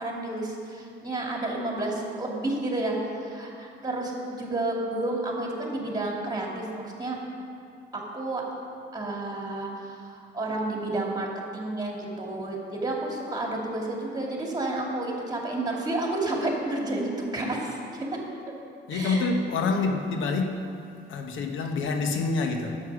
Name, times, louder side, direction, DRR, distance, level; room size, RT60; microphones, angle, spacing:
voice 1, 0.0-7.2 7.9-8.4 8.9-18.1 18.9-19.3, right 2 dB, 20° right, -1 dB, 2.4 m, -31 dB
voice 2, 18.9-20.6 21.1-22.8, left 3 dB, 80° left, 4 dB, 0.9 m, -27 dB
9.5 x 7.7 x 6.2 m, 2.5 s
cardioid pair, 90°, 20 cm